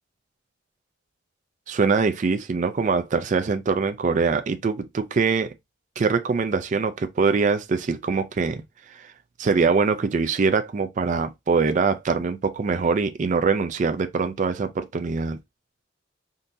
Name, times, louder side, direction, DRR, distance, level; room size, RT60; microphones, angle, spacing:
voice 1, 1.7-5.5 6.0-9.1 9.4-15.4, right 4 dB, 40° right, 0.4 m, -23 dB
3.7 x 2.7 x 2.5 m
head